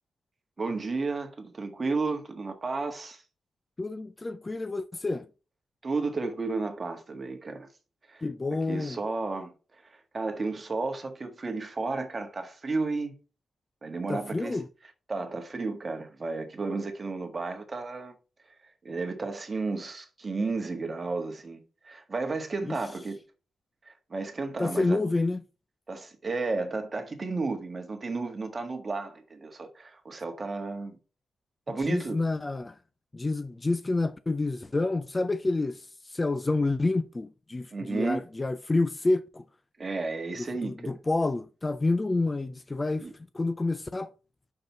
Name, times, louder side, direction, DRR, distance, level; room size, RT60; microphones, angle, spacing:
voice 1, 0.6-3.2 5.8-7.7 8.1-8.3 8.7-13.1 13.8-14.6 15.1-18.1 18.4-18.5 18.8-23.2 23.8-25.0 25.9-31.0 31.7-32.2 37.7-38.2 39.8-40.9 43.0-43.1, right 3 dB, 30° right, 1.5 m, -33 dB
voice 2, 3.8-5.3 8.2-9.0 14.1-14.7 22.6-22.8 24.6-25.4 31.9-32.7 33.1-39.4 40.4-43.1 43.3-44.1, left 2 dB, 20° left, 0.4 m, -28 dB
5.9 x 5.2 x 6.6 m
wide cardioid pair, 130°, 0 cm